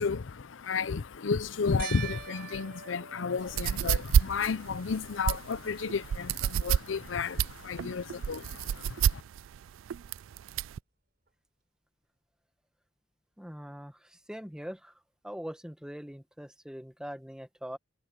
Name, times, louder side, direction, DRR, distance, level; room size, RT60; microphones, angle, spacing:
voice 1, 0.0-9.2, left 5 dB, 75° left, 0.6 m, -32 dB
sound 1, 1.8-4.4 5.0-5.6 5.9-6.0 9.2-9.3, right 6 dB, 55° right, 4.3 m, -43 dB
sound 2, 3.4-10.8, right 8 dB, 85° right, 0.3 m, -28 dB
voice 2, 13.4-14.9 15.2-17.8, equal, 5° right, 1.2 m, -42 dB
head